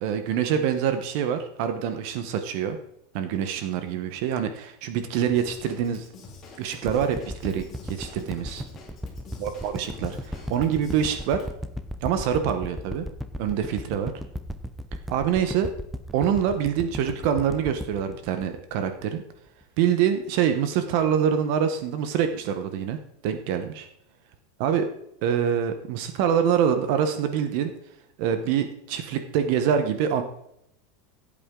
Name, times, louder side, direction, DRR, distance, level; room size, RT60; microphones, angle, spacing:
voice 1, 0.0-2.8 3.1-6.1 6.6-8.6 9.4-11.4 12.0-13.1 13.4-14.1 15.1-15.7 16.1-19.2 19.8-23.0 23.2-23.9 24.6-24.9 25.2-27.7 28.2-30.2, right 8 dB, 45° right, 8 dB, 1.0 m, -25 dB
Drum kit / Drum, 5.3-11.5, left 3 dB, 20° left, 2.3 m, -46 dB
sound 1, 6.9-19.2 19.6-19.7, equal, ahead, 0.5 m, -35 dB
16.0 x 8.6 x 3.8 m, 0.77 s
supercardioid pair, 180°, 0 cm